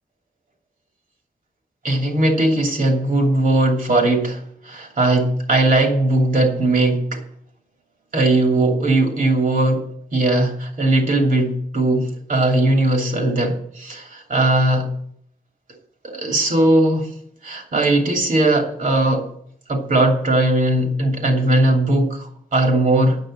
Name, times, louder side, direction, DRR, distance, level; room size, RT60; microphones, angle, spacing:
voice 1, 1.8-7.2 8.1-9.8 10.1-14.9 16.0-17.1 17.4-19.3 19.7-23.2, right 2 dB, 65° right, 2 dB, 2.8 m, -18 dB
9.1 x 7.6 x 8.8 m, 0.66 s
wide cardioid pair, 140°, 15 cm